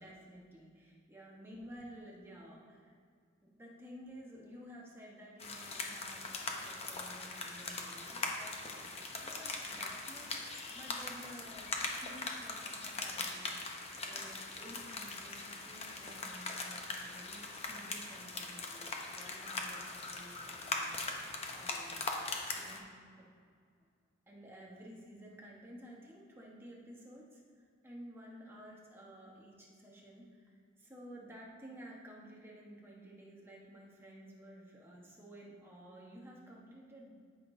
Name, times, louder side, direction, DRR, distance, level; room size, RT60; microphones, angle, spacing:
voice 1, 0.0-2.9 3.4-8.9 9.2-22.0 22.5-23.3 24.3-37.2, equal, 10° right, -4 dB, 1.2 m, -53 dB
sound 1, 5.4-22.8, left 3 dB, 30° left, 0.8 m, -41 dB
13.5 x 6.0 x 2.7 m, 2.1 s
head